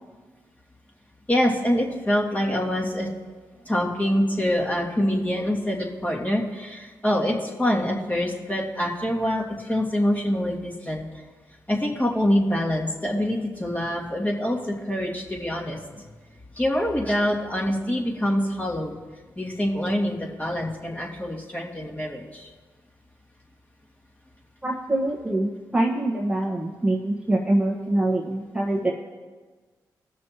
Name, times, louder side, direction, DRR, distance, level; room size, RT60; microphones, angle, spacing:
voice 1, 1.3-3.1 3.6-11.0 11.7-16.0 16.6-19.0 19.4-22.5, equal, 20° left, -3 dB, 2.3 m, -25 dB
voice 2, 24.6-28.9, right 1 dB, 10° right, -2 dB, 1.4 m, -24 dB
17.5 x 6.3 x 3.0 m, 1.4 s
supercardioid pair, 45°, 8 cm